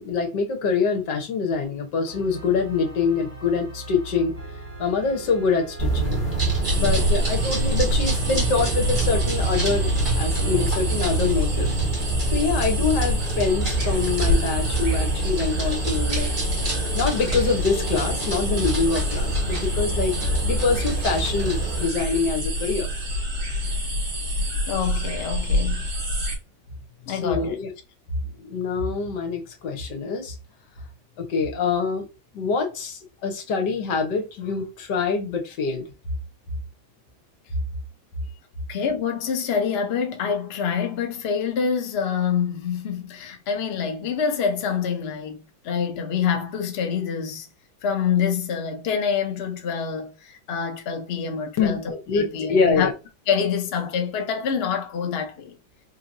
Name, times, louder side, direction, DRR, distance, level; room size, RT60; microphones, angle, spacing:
voice 1, 0.0-4.4 4.8-6.2 6.7-9.9 10.2-11.7 12.2-16.3 16.9-20.1 20.4-22.9 27.1-27.7 28.4-30.3 31.2-32.1 32.3-35.9 51.6-51.8 52.1-52.9, left 5 dB, 65° left, 1.5 m, -25 dB
Organ, 2.1-11.2, right 1 dB, 50° right, 2.6 m, -41 dB
sound 1, 5.8-21.9, right 3 dB, 25° right, 2.0 m, -26 dB
sound 2, 6.6-26.4, left 1 dB, 70° right, 2.3 m, -27 dB
voice 2, 6.8-7.1 24.7-25.9 27.1-27.6 38.7-47.5 47.8-52.9 53.3-55.6, left 7 dB, 80° left, 0.5 m, -26 dB
4.6 x 2.9 x 2.6 m
omnidirectional pair, 2.2 m